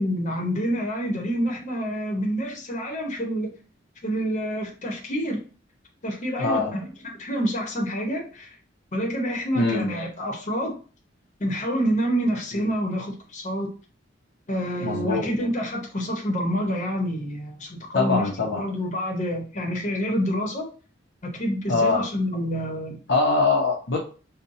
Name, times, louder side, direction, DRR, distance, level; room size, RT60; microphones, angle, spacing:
voice 1, 0.0-3.5 4.0-5.4 6.0-8.6 8.9-10.8 11.4-13.7 14.5-20.7 21.2-23.0, equal, 40° left, 0.9 m, -27 dB
voice 2, 6.4-6.7 9.5-9.9 12.5-12.7 14.8-15.3 17.9-18.6 21.7-22.0 23.1-24.0, left 3 dB, 65° left, 0.7 m, -23 dB
5.4 x 2.2 x 2.7 m
head